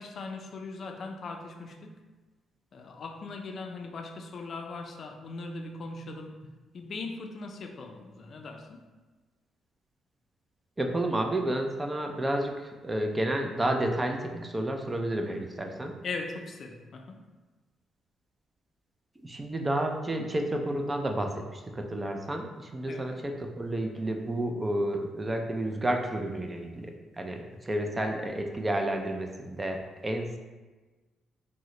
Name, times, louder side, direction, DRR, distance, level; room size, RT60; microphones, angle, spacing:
voice 1, 0.0-2.0 2.7-8.8 16.0-17.2 22.9-23.1, left 3 dB, 50° left, 4 dB, 0.4 m, -40 dB
voice 2, 10.8-16.0 19.2-30.4, right 1 dB, 20° right, 3 dB, 0.4 m, -31 dB
3.6 x 2.1 x 2.9 m, 1.3 s
cardioid pair, 90°, 0 cm